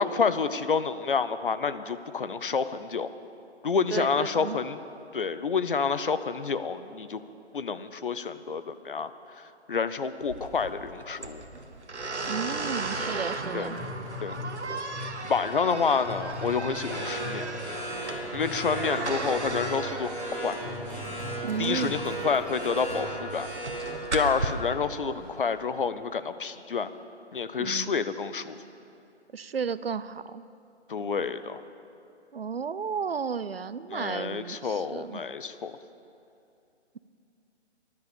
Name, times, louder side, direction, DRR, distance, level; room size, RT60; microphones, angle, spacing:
voice 1, 0.0-3.1 3.6-4.8 5.1-7.2 7.5-11.4 13.5-13.7 14.2-14.4 15.2-17.5 18.3-20.1 20.4-20.6 21.6-23.5 24.1-26.9 27.3-28.6 30.9-31.6 33.9-35.7, left 5 dB, 50° left, 12 dB, 0.6 m, -29 dB
voice 2, 3.9-4.6 12.3-13.8 21.4-22.0 27.6-27.9 29.3-30.4 32.3-35.2, right 6 dB, 60° right, 15 dB, 0.5 m, -33 dB
sound 1, 10.2-24.5, right 3 dB, 80° right, 1.2 m, -36 dB
sound 2, 13.8-23.3, left 1 dB, 20° right, 3.9 m, -39 dB
sound 3, 16.1-25.7, right 1 dB, 5° left, 3.1 m, -37 dB
14.5 x 11.5 x 6.9 m, 2.7 s
figure-of-eight pair, 140°, 34 cm